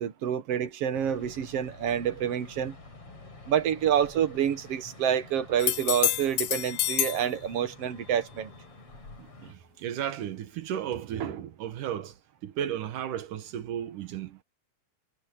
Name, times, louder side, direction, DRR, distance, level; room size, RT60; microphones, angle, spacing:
voice 1, 0.0-2.8 3.5-8.5, right 9 dB, 60° right, 2.1 m, -28 dB
sound 1, 0.9-9.5, left 3 dB, 45° left, 6.5 m, -49 dB
sound 2, 5.6-7.3 10.9-11.0, left 15 dB, 80° left, 2.2 m, -28 dB
voice 2, 9.2-14.4, right 10 dB, 90° right, 3.0 m, -34 dB
omnidirectional pair, 3.5 m